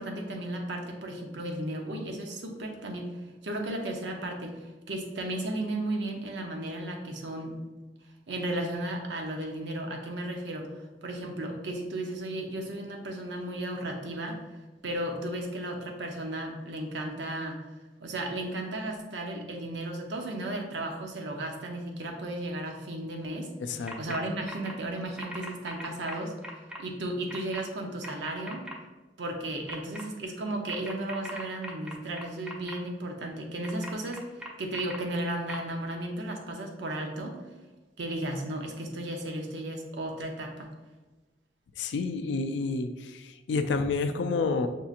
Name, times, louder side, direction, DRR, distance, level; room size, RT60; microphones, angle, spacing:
voice 1, 0.0-3.1 3.4-7.6 8.3-10.7 11.0-14.4 14.8-17.6 18.0-23.5 24.0-26.3 26.8-28.7 29.2-34.3 34.6-37.4 38.0-40.7, right 1 dB, 85° right, 2 dB, 0.7 m, -34 dB
voice 2, 23.6-24.0 41.8-44.7, left 4 dB, 75° left, 8 dB, 0.3 m, -29 dB
sound 1, 23.9-24.2 24.5-24.7 25.2-26.8 27.3-27.6 28.0-28.7 29.7-30.0 30.7-32.7 33.6-35.0 35.5-35.6, equal, 5° right, 0.4 m, -40 dB
5.9 x 2.8 x 2.4 m, 1.2 s
head